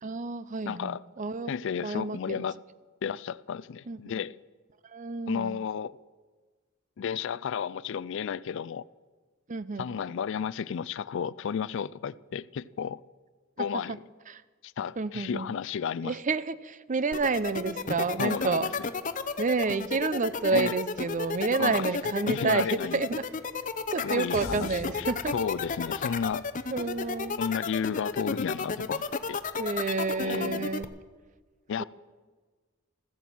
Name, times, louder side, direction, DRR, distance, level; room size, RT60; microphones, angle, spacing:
voice 1, 0.0-1.5 1.8-2.4 3.9-4.2 4.9-5.6 9.5-9.9 13.6-14.0 14.3-14.4 15.0-15.5 16.0-18.7 19.4-23.2 23.9-25.3 26.7-27.4 29.6-30.9 31.8-31.9, right 4 dB, 35° right, 0.6 m, -29 dB
voice 2, 0.7-1.0 1.5-2.6 3.0-4.4 5.3-6.0 7.0-8.9 9.8-13.0 13.6-14.0 14.6-16.1 18.2-18.6 20.5-20.7 21.6-21.9 22.3-23.0 24.0-25.1 25.3-26.5 27.4-29.4 30.2-30.7 31.7-31.8, left 7 dB, 60° left, 0.4 m, -32 dB
sound 1, 17.1-30.8, left 5 dB, 40° left, 0.7 m, -32 dB
sound 2, 24.3-28.7, left 2 dB, 85° left, 1.3 m, -46 dB
14.5 x 14.0 x 6.0 m
head